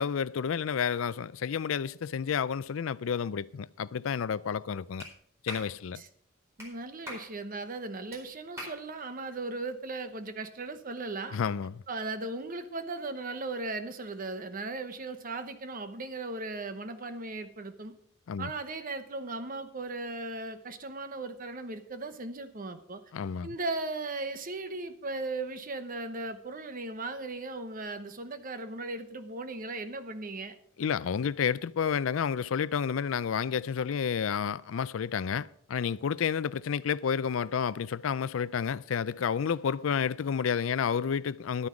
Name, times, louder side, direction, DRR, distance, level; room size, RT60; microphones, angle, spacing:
voice 1, 0.0-5.1 5.4-6.0 11.3-11.7 18.3-18.5 23.1-23.5 30.8-41.7, left 7 dB, 70° left, 0.4 m, -30 dB
Clapping, 5.0-5.1 5.5-5.7 6.6-6.7 7.1-7.3 8.1-8.2 8.6-8.8, equal, 15° right, 4.5 m, -41 dB
voice 2, 6.6-11.4 11.9-17.9 18.4-23.0 23.4-30.5, right 2 dB, 40° right, 0.9 m, -37 dB
11.5 x 9.6 x 5.0 m
head